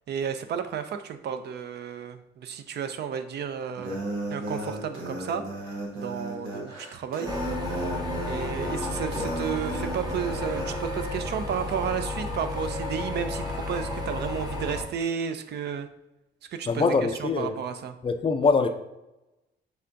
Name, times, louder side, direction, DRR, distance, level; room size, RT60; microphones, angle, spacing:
voice 1, 0.1-4.0 4.3-7.3 8.3-15.9 16.5-16.9 17.2-18.0, right 7 dB, 55° right, 9 dB, 0.4 m, -32 dB
sound 1, 3.8-10.8, right 1 dB, 85° right, 1.3 m, -34 dB
sound 2, 7.3-14.8, left 2 dB, 20° right, 0.8 m, -32 dB
voice 2, 16.7-17.6 18.0-18.7, left 4 dB, 25° left, 7 dB, 0.4 m, -23 dB
5.7 x 3.4 x 2.5 m, 0.95 s
cardioid pair, 90°, 20 cm